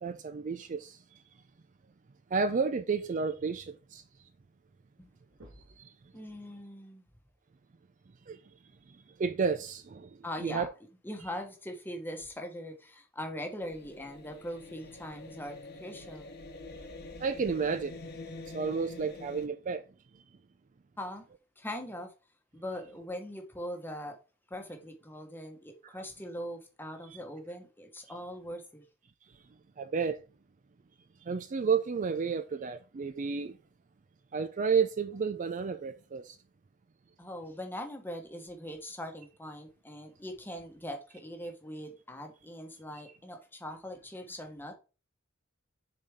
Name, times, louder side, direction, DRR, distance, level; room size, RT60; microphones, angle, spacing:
voice 1, 0.0-1.2 2.3-4.0 5.8-5.9 8.3-8.4 8.9-10.7 17.2-18.0 18.5-19.8 29.8-30.2 31.2-33.6 34.3-36.4, right 5 dB, 40° right, 0.4 m, -31 dB
sound 1, 4.9-5.0 5.3-5.9 7.7-7.8 9.6-9.7 10.6-10.7, equal, 85° right, 1.6 m, -55 dB
voice 2, 6.1-7.1 10.2-10.7 11.0-16.3 21.0-21.2 21.6-22.1 22.5-24.2 24.5-28.8 37.2-44.7, equal, 10° left, 1.1 m, -41 dB
sound 2, 13.6-19.5, left 2 dB, 50° left, 1.1 m, -46 dB
6.6 x 4.1 x 3.6 m
head